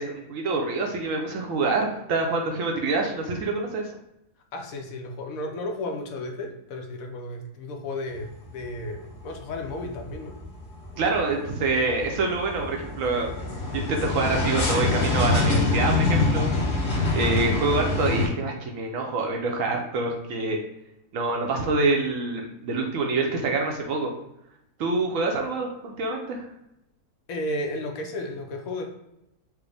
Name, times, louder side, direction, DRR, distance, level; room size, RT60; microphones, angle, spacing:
voice 1, 0.0-3.9 11.0-13.3 13.7-16.5 17.1-20.6 21.1-24.1 24.8-26.5, right 3 dB, 70° right, 1 dB, 0.9 m, -26 dB
voice 2, 4.5-10.4 17.3-17.4 27.3-28.8, left 1 dB, 70° left, 3 dB, 1.0 m, -33 dB
sound 1, 8.1-8.7 9.1-18.3, left 2 dB, 50° left, 1.1 m, -25 dB
4.7 x 2.0 x 3.3 m, 0.86 s
omnidirectional pair, 1.6 m